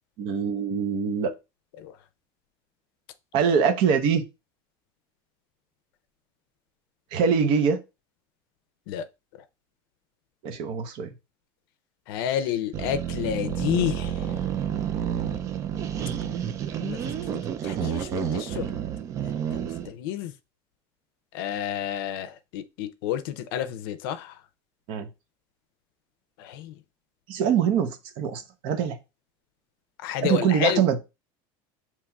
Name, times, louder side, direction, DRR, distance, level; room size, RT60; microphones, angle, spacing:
voice 1, 0.2-1.3 3.3-4.2 7.1-7.8 10.4-11.1 24.9-25.1 27.3-29.0 30.2-31.0, right 7 dB, 45° right, 0.8 m, -23 dB
voice 2, 12.1-14.1 16.8-17.0 17.3-18.7 19.9-20.3 21.3-24.3 26.4-26.7 30.0-30.8, left 10 dB, 80° left, 0.5 m, -30 dB
sound 1, 12.7-19.9, right 9 dB, 25° right, 0.3 m, -30 dB
7.1 x 2.9 x 2.3 m
cardioid pair, 170°, 12 cm